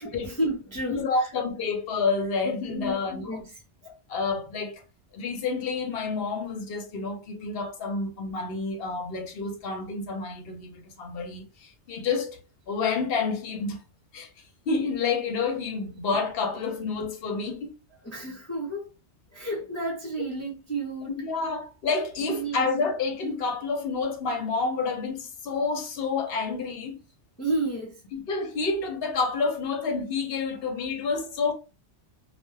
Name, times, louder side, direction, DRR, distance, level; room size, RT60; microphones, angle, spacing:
voice 1, 0.0-1.3 2.7-2.9 3.2-3.4 18.0-18.9 19.3-21.2 22.2-22.6 27.4-28.0, right 2 dB, 15° left, 0.6 m, -31 dB
voice 2, 0.9-3.3 4.1-4.8 5.1-13.8 14.1-14.3 14.7-17.7 21.1-27.0 28.1-31.5, left 4 dB, 65° left, 0.7 m, -29 dB
2.2 x 2.2 x 3.1 m
omnidirectional pair, 1.2 m